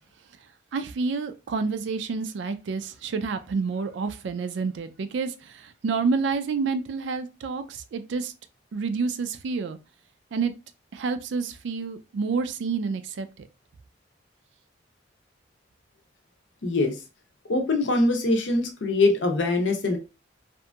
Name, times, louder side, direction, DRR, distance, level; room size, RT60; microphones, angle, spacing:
voice 1, 0.7-8.3 8.7-9.8 10.3-10.5 10.9-13.3, right 4 dB, 70° right, 0.4 m, -29 dB
voice 2, 16.6-16.9 17.5-20.0, left 2 dB, 70° left, 0.6 m, -23 dB
2.8 x 2.5 x 2.2 m
head